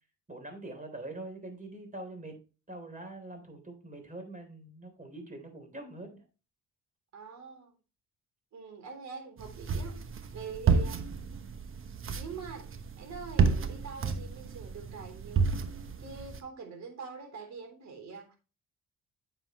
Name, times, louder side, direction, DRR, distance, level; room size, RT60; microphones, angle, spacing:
voice 1, 0.3-2.4 2.7-6.2, right 2 dB, 25° right, 3.5 m, -44 dB
voice 2, 7.1-7.7 8.5-10.1 10.3-11.0 12.1-12.7 13.0-15.5 16.0-18.4, right 5 dB, 65° right, 3.5 m, -44 dB
sound 1, 9.4-16.4, right 5 dB, 45° right, 1.1 m, -31 dB
9.2 x 7.0 x 3.0 m
cardioid pair, 90°, 30 cm